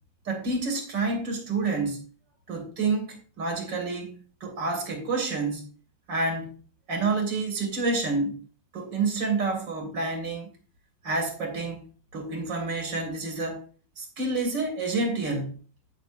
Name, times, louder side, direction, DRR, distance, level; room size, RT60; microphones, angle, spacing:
voice 1, 0.3-2.0 2.5-5.7 6.1-6.6 6.9-8.4 8.7-10.5 11.0-11.8 12.1-13.6 14.0-15.5, right 3 dB, 80° right, 2.6 m, -28 dB
15.5 x 5.7 x 2.5 m
omnidirectional pair, 2.0 m